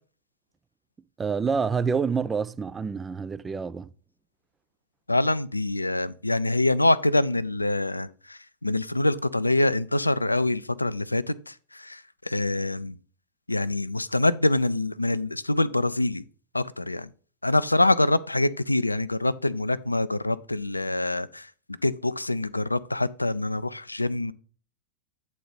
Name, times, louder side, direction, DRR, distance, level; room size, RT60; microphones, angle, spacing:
voice 1, 1.2-3.9, right 5 dB, 15° right, 0.3 m, -27 dB
voice 2, 5.1-13.0 13.5-16.2 16.5-17.1 17.4-24.3, left 2 dB, 85° left, 0.3 m, -25 dB
8.5 x 4.1 x 4.9 m
figure-of-eight pair, 90°, 0 cm